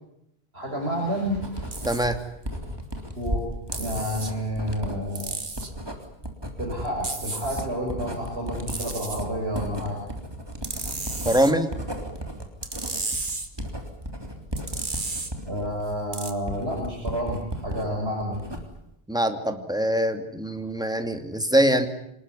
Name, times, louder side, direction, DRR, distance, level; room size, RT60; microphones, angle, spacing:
voice 1, 0.5-2.2 3.1-3.5 3.8-5.4 6.6-10.0 14.9-15.1 15.4-18.4, equal, 75° right, -1 dB, 6.7 m, -30 dB
Writing, 1.3-17.9 18.2-18.9, equal, 25° right, 3.6 m, -35 dB
sound 1, 1.7-2.1 3.7-4.3 5.1-5.7 7.0-7.7 8.7-9.2 10.6-11.5 12.6-13.5 14.6-15.3 16.1-16.3, right 3 dB, 50° right, 2.2 m, -33 dB
voice 2, 1.8-2.2 11.2-11.7 19.1-21.9, right 1 dB, 5° right, 6 dB, 2.5 m, -23 dB
26.5 x 20.0 x 9.9 m, 0.80 s
omnidirectional pair, 1.1 m